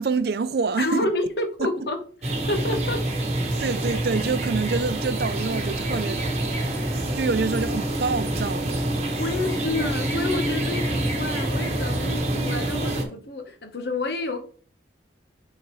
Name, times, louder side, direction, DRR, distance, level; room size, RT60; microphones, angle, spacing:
voice 1, 0.0-1.1 1.6-1.9 3.6-8.8, right 4 dB, 60° right, 0.4 m, -27 dB
voice 2, 0.8-2.0 2.2-3.0 9.2-14.4, left 2 dB, 65° left, 1.1 m, -29 dB
sound 1, 2.2-13.0, right 1 dB, 35° right, 1.1 m, -26 dB
8.4 x 4.0 x 3.1 m
head